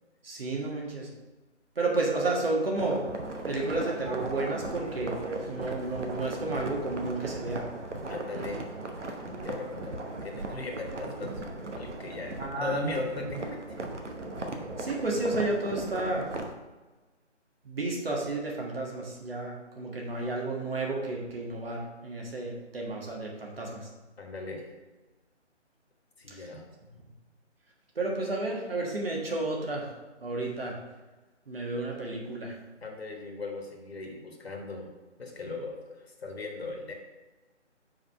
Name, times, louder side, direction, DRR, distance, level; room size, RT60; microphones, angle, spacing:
voice 1, 0.2-1.1 1.7-3.0 3.4-5.2 5.5-7.6 12.4-13.1 14.8-16.3 17.6-23.9 26.3-26.5 27.9-29.9 30.2-30.8 31.5-32.6, right 2 dB, 50° right, -1 dB, 1.6 m, -31 dB
sound 1, 2.8-16.5, right 2 dB, 70° right, 1.0 m, -37 dB
voice 2, 8.1-8.6 9.4-13.8 24.2-24.7 26.2-26.7 32.8-34.9 35.2-36.9, left 3 dB, 55° left, 1 dB, 1.3 m, -38 dB
5.1 x 4.1 x 5.4 m, 1.2 s
figure-of-eight pair, 170°, 36 cm